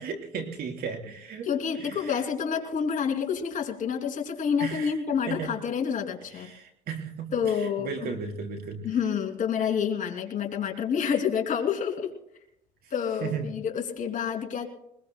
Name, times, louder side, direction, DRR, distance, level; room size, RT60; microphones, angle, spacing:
voice 1, 0.0-1.5 1.8-2.2 4.6-4.9 5.3-5.5 6.3-8.9 13.2-13.5, right 5 dB, 65° right, 3 dB, 4.0 m, -35 dB
voice 2, 1.4-6.5 7.3-8.1 8.8-12.1 12.9-14.7, left 7 dB, 50° left, 2 dB, 2.9 m, -28 dB
23.5 x 21.0 x 2.2 m, 0.80 s
cardioid pair, 110°, 17 cm